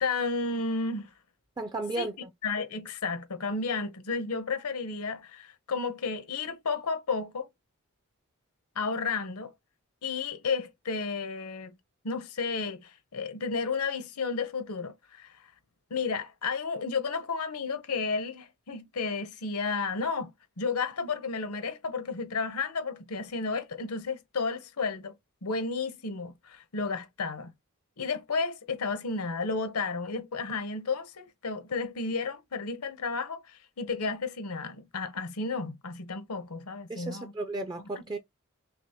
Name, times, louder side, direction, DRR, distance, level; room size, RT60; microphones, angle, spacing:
voice 1, 0.0-1.1 2.0-2.1 2.4-7.5 8.8-9.5 10.0-11.7 12.0-15.3 15.9-20.3 20.6-25.1 25.4-27.5 28.0-37.3 38.0-38.2, left 4 dB, 80° left, 0.9 m, -32 dB
voice 2, 1.6-2.1 36.9-38.2, right 2 dB, 20° right, 0.4 m, -34 dB
5.8 x 2.1 x 2.8 m
head